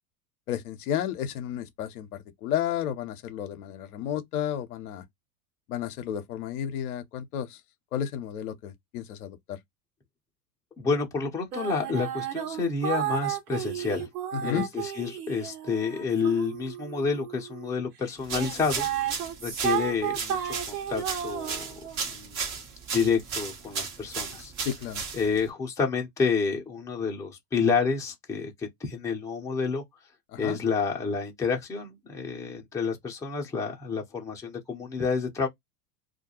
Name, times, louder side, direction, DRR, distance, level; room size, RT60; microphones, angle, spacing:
voice 1, 0.5-5.0 5.7-7.6 7.9-9.6 14.3-14.7 24.6-25.0 30.3-30.6, left 10 dB, 65° left, 0.6 m, -32 dB
voice 2, 10.8-14.1 14.4-18.9 19.4-20.4 20.7-22.6 22.9-24.5 25.1-29.8 30.4-35.5, left 5 dB, 5° left, 0.6 m, -29 dB
sound 1, 11.5-17.7 18.3-22.0, right 10 dB, 75° right, 1.2 m, -33 dB
sound 2, 18.2-25.5, right 5 dB, 40° right, 1.0 m, -35 dB
2.3 x 2.2 x 2.8 m
hypercardioid pair, 85°, 48 cm